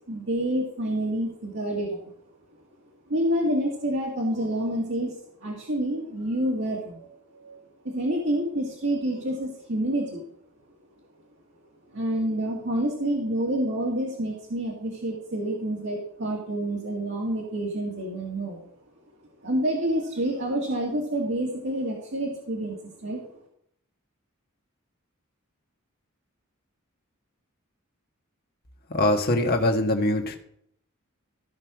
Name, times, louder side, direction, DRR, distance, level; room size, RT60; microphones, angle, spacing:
voice 1, 0.1-2.1 3.1-5.1 5.4-7.1 7.4-7.6 7.8-10.2 11.9-18.6 19.4-23.2, right 1 dB, 60° right, -2 dB, 2.2 m, -28 dB
voice 2, 28.9-30.4, left 1 dB, 45° left, 3 dB, 1.5 m, -23 dB
14.5 x 5.5 x 6.2 m, 0.69 s
head